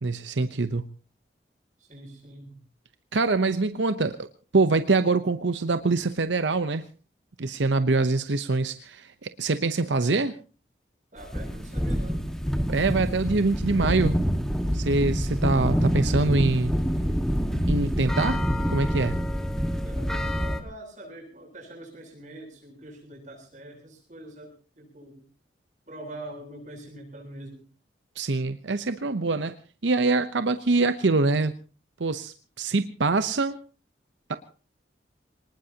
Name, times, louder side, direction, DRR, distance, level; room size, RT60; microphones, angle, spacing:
voice 1, 0.0-0.9 3.1-4.3 4.5-6.8 7.4-10.4 12.7-14.2 14.7-16.7 17.7-18.4 18.7-19.2 28.2-29.5 29.8-31.5 32.0-33.6 34.3-34.4, right 3 dB, 90° right, 10 dB, 0.8 m, -24 dB
voice 2, 1.9-2.6 11.1-12.3 19.8-25.2 25.9-27.6, right 1 dB, 45° right, 1 dB, 7.8 m, -44 dB
sound 1, 11.2-20.6, equal, 5° left, 1.6 m, -26 dB
25.0 x 19.5 x 2.9 m, 0.35 s
head